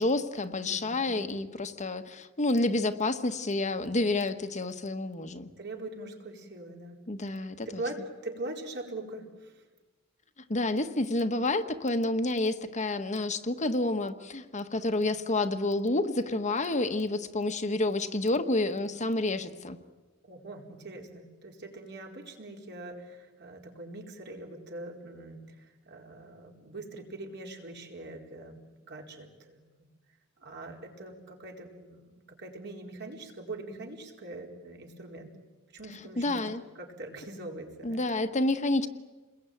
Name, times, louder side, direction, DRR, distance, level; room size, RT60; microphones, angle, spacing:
voice 1, 0.0-5.5 7.1-7.8 10.5-19.8 36.2-36.6 37.8-38.9, left 2 dB, 35° left, 8 dB, 1.3 m, -29 dB
voice 2, 0.6-1.5 5.6-9.7 20.2-29.9 30.4-35.3 35.7-36.4 36.8-38.1, right 2 dB, 55° right, 2 dB, 4.5 m, -43 dB
29.0 x 21.5 x 9.3 m, 1.3 s
head